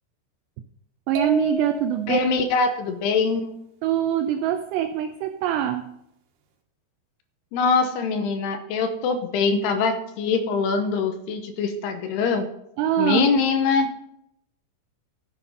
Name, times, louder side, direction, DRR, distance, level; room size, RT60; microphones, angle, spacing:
voice 1, 1.1-2.2 3.8-6.0 12.8-13.3, right 9 dB, 90° right, 9 dB, 2.4 m, -24 dB
sound 1, 1.2-2.3, right 2 dB, 70° right, 3.3 m, -32 dB
voice 2, 2.1-3.5 7.5-12.5 13.0-13.9, left 4 dB, 75° left, 7 dB, 2.6 m, -23 dB
14.0 x 7.5 x 5.3 m, 0.81 s
omnidirectional pair, 5.5 m